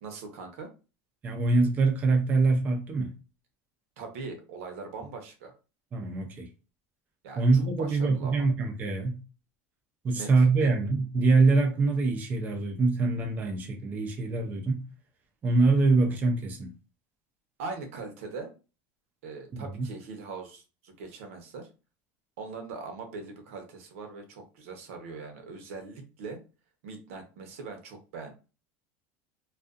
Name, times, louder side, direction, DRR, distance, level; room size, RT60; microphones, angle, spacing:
voice 1, 0.0-0.7 4.0-5.5 7.2-8.5 10.1-10.7 17.6-18.5 19.2-21.7 22.4-26.4 26.8-28.3, right 4 dB, 85° right, 0.9 m, -41 dB
voice 2, 1.2-3.1 5.9-6.5 7.4-9.2 10.0-14.8 15.4-16.7 19.5-19.9, right 3 dB, 20° right, 0.4 m, -24 dB
2.5 x 2.3 x 2.4 m
supercardioid pair, 155°, 7 cm